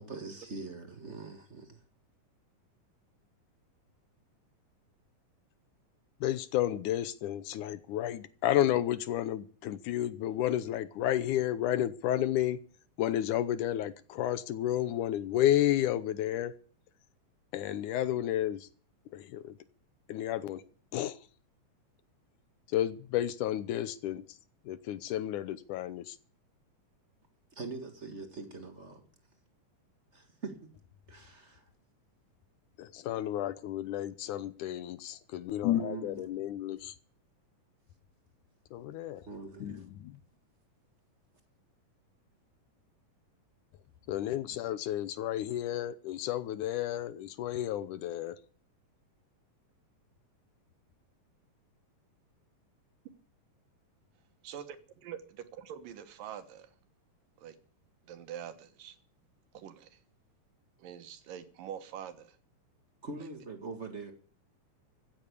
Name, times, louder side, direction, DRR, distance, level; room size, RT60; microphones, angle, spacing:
voice 1, 0.0-1.8 27.5-29.0 30.1-30.7 31.1-31.7 35.7-36.4 39.3-39.9 63.0-64.1, right 3 dB, 35° right, 1.2 m, -43 dB
voice 2, 6.2-12.6 13.0-16.5 17.5-18.7 19.1-19.6 20.1-20.6 20.9-21.2 22.7-24.2 24.7-26.2 32.8-36.9 38.7-39.2 39.6-40.1 44.1-48.4, left 12 dB, 75° left, 2.1 m, -31 dB
voice 3, 54.4-54.8 55.0-56.7 57.4-57.6 58.1-59.0 59.5-60.0 60.8-62.4, right 9 dB, 80° right, 3.0 m, -44 dB
15.5 x 8.7 x 8.4 m
omnidirectional pair, 3.9 m